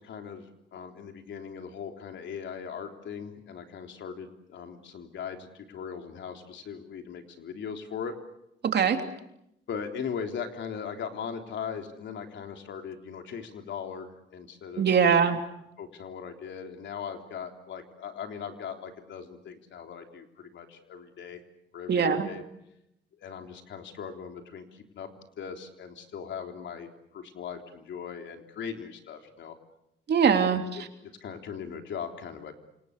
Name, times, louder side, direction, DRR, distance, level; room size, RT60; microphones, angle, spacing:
voice 1, 0.0-8.2 9.7-14.9 15.1-15.3 15.8-21.4 21.7-22.4 23.2-25.1 25.4-29.6 30.7-32.5, left 7 dB, 70° left, 4 dB, 3.6 m, -39 dB
voice 2, 8.6-9.0 14.8-15.4 21.9-22.3 30.1-30.9, right 6 dB, 55° right, 5 dB, 3.2 m, -22 dB
29.0 x 26.5 x 6.8 m, 0.83 s
cardioid pair, 90°, 20 cm